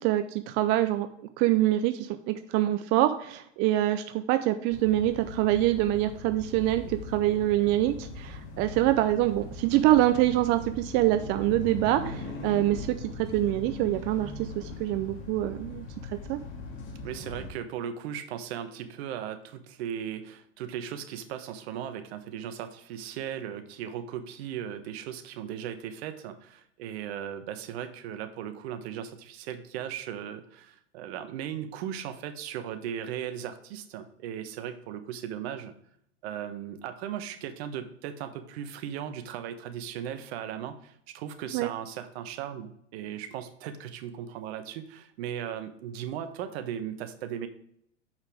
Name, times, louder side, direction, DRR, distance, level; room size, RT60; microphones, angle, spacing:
voice 1, 0.0-15.8 16.3-16.4 41.5-41.7, right 14 dB, 30° right, 9 dB, 0.4 m, -25 dB
sound 1, 4.7-17.5, left 3 dB, 35° left, 2.0 m, -40 dB
voice 2, 17.0-35.7 36.2-47.5, right 9 dB, 55° right, 9 dB, 1.1 m, -37 dB
7.1 x 5.5 x 3.4 m, 0.69 s
hypercardioid pair, 115°, 37 cm